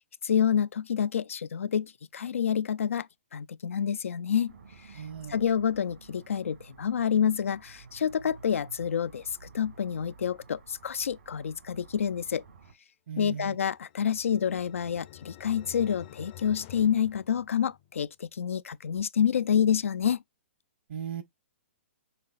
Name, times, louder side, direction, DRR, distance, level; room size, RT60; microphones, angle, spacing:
voice 1, 0.2-4.5 5.3-12.4 13.2-20.2, left 8 dB, 90° left, 0.4 m, -28 dB
sound 1, 4.5-12.7, right 4 dB, 85° right, 2.5 m, -52 dB
voice 2, 4.9-5.4 13.1-13.6 20.9-21.2, right 8 dB, 60° right, 0.9 m, -37 dB
sound 2, 13.6-18.0, left 12 dB, 40° left, 0.5 m, -50 dB
5.8 x 3.8 x 2.4 m
hypercardioid pair, 145°, 7 cm